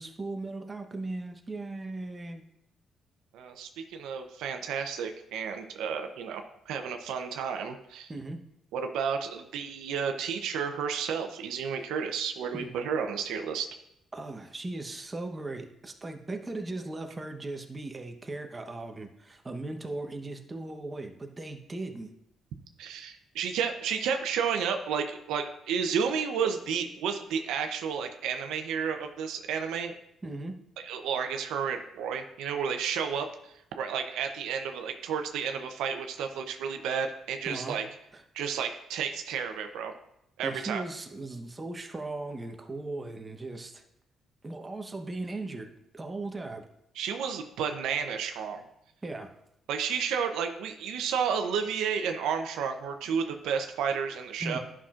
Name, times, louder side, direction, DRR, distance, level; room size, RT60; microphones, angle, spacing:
voice 1, 0.0-2.4 8.1-8.4 12.5-12.7 14.1-22.1 30.2-30.6 37.5-37.8 38.1-38.2 40.4-43.8 44.4-46.6 49.0-49.3 54.4-54.6, right 2 dB, 25° right, 4 dB, 0.9 m, -38 dB
voice 2, 3.3-8.1 8.7-13.7 22.8-29.9 30.8-37.9 38.3-39.9 40.4-40.8 47.0-48.6 49.7-54.6, right 7 dB, 90° right, 6 dB, 0.6 m, -31 dB
11.0 x 5.9 x 2.4 m, 0.81 s
cardioid pair, 90°, 0 cm